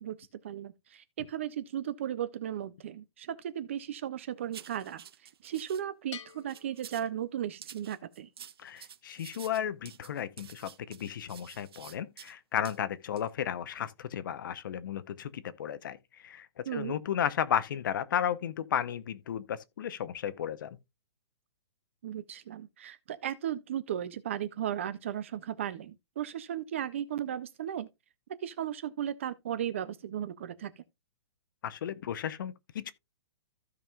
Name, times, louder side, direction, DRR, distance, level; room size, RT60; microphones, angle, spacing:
voice 1, 0.4-5.0 5.4-8.3 16.7-17.0 22.0-27.9 28.4-30.8, right 10 dB, 25° right, 0.4 m, -36 dB
sound 1, 4.5-5.8 6.3-7.1 7.6-12.3 12.6-12.8 13.2-13.3, right 9 dB, 55° right, 0.7 m, -50 dB
Bell, 6.1-7.8, left 8 dB, 75° left, 1.1 m, -49 dB
voice 2, 8.6-16.0 16.2-20.8 31.6-32.9, left 9 dB, 45° left, 0.7 m, -34 dB
15.0 x 5.4 x 2.3 m
hypercardioid pair, 175°, 15 cm